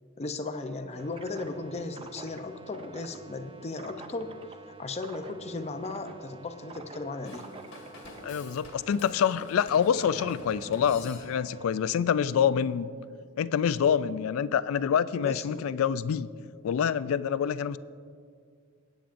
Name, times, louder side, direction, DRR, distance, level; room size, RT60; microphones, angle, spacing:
voice 1, 0.2-4.4 4.8-7.5 15.2-15.6, left 3 dB, 30° left, 7 dB, 0.6 m, -36 dB
sound 1, 1.0-11.9, right 3 dB, 25° right, 0.4 m, -48 dB
Drum kit / Drum, 7.2-11.6, left 1 dB, 60° left, 1.6 m, -46 dB
voice 2, 8.2-12.9 13.4-16.3 16.6-17.8, left 8 dB, 75° left, 16 dB, 0.3 m, -26 dB
17.5 x 8.9 x 2.6 m, 2.1 s
head